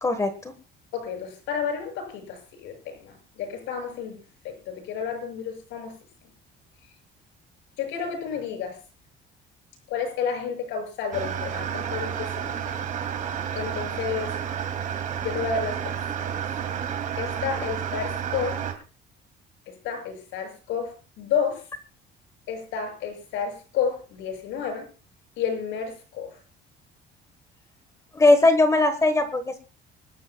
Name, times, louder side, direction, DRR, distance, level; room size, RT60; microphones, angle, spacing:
voice 1, 0.0-0.5 28.1-29.6, left 2 dB, 15° left, 9 dB, 1.2 m, -20 dB
voice 2, 0.9-5.9 7.8-8.8 9.9-12.6 13.5-14.4 15.2-16.3 17.2-18.6 19.7-21.6 22.5-24.9 25.4-26.4, left 6 dB, 75° left, 5 dB, 6.5 m, -31 dB
sound 1, 11.1-18.7, right 8 dB, 40° right, 2.4 m, -31 dB
25.5 x 12.5 x 2.2 m, 0.34 s
cardioid pair, 180°, 19 cm